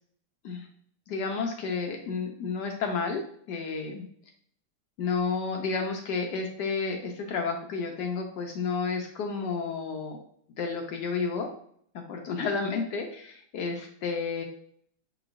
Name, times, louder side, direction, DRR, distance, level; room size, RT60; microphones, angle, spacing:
voice 1, 1.1-3.2 3.5-4.0 5.0-10.2 10.6-11.5 11.9-14.4, left 4 dB, 70° left, 2 dB, 1.2 m, -31 dB
6.9 x 3.0 x 2.5 m, 0.62 s
omnidirectional pair, 2.0 m